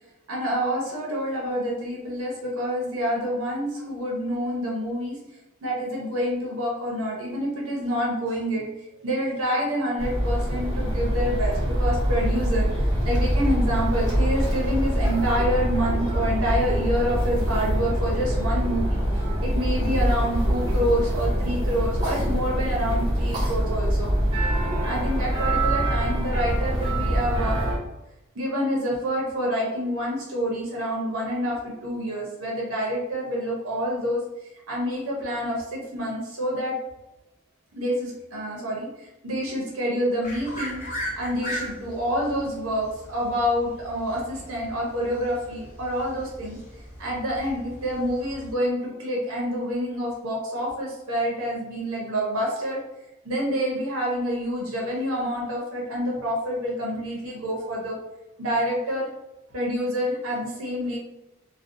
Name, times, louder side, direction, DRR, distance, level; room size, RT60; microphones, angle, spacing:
voice 1, 0.3-5.2 5.6-8.7 9.0-24.1 24.9-27.7 28.3-34.2 34.7-36.8 37.7-40.9 41.2-46.6 47.0-52.8 53.2-58.0 58.4-59.1 59.5-61.0, equal, 70° right, -3 dB, 0.7 m, -27 dB
sound 1, 10.0-27.8, equal, 20° right, 0.7 m, -24 dB
sound 2, 40.2-48.5, equal, 35° left, 0.7 m, -38 dB
2.5 x 2.2 x 2.6 m, 0.94 s
head